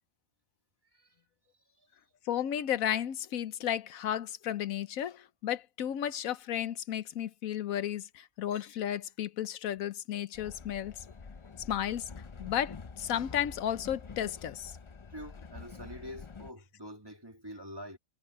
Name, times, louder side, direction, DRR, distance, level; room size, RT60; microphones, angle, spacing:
voice 1, 2.3-10.9 11.6-12.1 12.4-14.8, left 10 dB, 80° left, 1.2 m, -33 dB
Train, 10.3-16.5, left 5 dB, 40° left, 0.4 m, -47 dB
voice 2, 15.1-18.0, equal, 15° right, 2.0 m, -46 dB
omnidirectional pair, 1.4 m